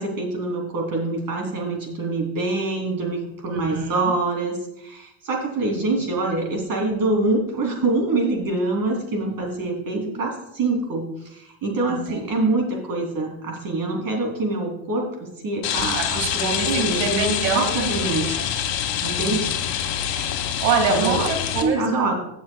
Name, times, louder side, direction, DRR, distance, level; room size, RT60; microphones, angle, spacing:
voice 1, 0.0-18.4 19.0-19.5 20.9-21.3 21.6-22.1, right 2 dB, 45° right, 1 dB, 3.1 m, -25 dB
voice 2, 3.5-4.1 11.9-12.2 15.9-18.5 19.1-19.5 20.0-22.0, right 4 dB, 85° right, 4 dB, 2.1 m, -26 dB
Rain, 15.6-21.6, left 9 dB, 65° left, 1.6 m, -26 dB
21.0 x 7.1 x 2.3 m, 0.84 s
supercardioid pair, 115°, 48 cm